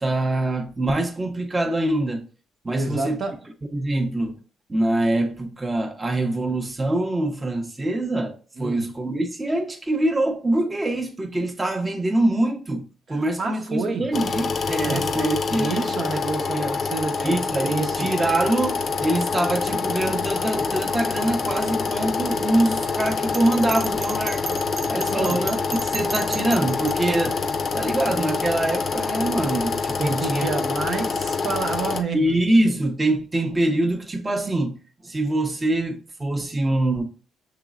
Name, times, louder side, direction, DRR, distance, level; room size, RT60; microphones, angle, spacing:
voice 1, 0.0-2.3 2.6-3.2 3.7-4.4 4.7-15.9 16.5-16.7 17.2-24.6 24.9-25.6 25.8-27.5 27.7-30.5 32.1-34.8 35.0-37.0, right 1 dB, 20° right, 0.8 m, -24 dB
voice 2, 2.7-3.4 8.6-8.9 13.1-14.1 14.8-18.1 25.1-25.4 30.0-32.4, right 4 dB, 55° right, 0.9 m, -29 dB
sound 1, 14.1-32.0, left 5 dB, 50° left, 0.6 m, -26 dB
Bell, 23.3-26.9, right 4 dB, 40° right, 0.4 m, -33 dB
6.7 x 3.1 x 2.4 m
cardioid pair, 90°, 0 cm